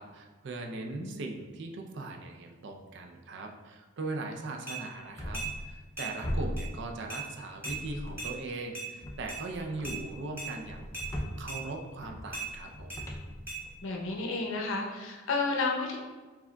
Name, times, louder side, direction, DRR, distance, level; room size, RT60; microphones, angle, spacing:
voice 1, 0.0-11.0 11.4-13.0, right 2 dB, 55° right, 3 dB, 0.4 m, -40 dB
sound 1, 4.7-4.8 5.3-5.5 6.0-6.1 6.6-6.7 7.1-7.2 7.6-7.8 8.2-8.3 8.7-8.9 9.3-9.4 9.8-10.0 10.4-10.5 10.9-11.1 11.5-11.6 12.3-12.5 12.9-13.0 13.5-13.6, right 4 dB, 10° right, 1.3 m, -37 dB
sound 2, 5.2-5.9 6.2-7.3 7.6-8.5 9.0-14.1, equal, 15° left, 0.4 m, -39 dB
voice 2, 13.8-16.0, left 3 dB, 65° left, 0 dB, 0.7 m, -31 dB
4.8 x 3.8 x 2.2 m, 1.3 s
head